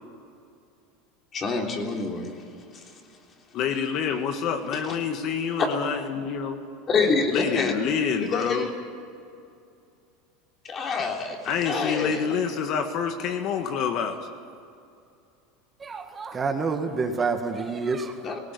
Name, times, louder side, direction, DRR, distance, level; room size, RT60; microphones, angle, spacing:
voice 1, 1.3-2.4 2.7-2.8 4.8-5.0 6.9-7.7 8.2-8.7 10.6-12.2 18.2-18.4, left 4 dB, 30° left, 2 dB, 3.5 m, -27 dB
voice 2, 3.5-6.6 7.3-8.7 11.4-14.2, left 6 dB, 50° left, 6 dB, 1.7 m, -27 dB
voice 3, 15.8-18.1, right 4 dB, 20° right, 5 dB, 1.8 m, -28 dB
19.0 x 17.5 x 9.6 m, 2.5 s
supercardioid pair, 125°, 0 cm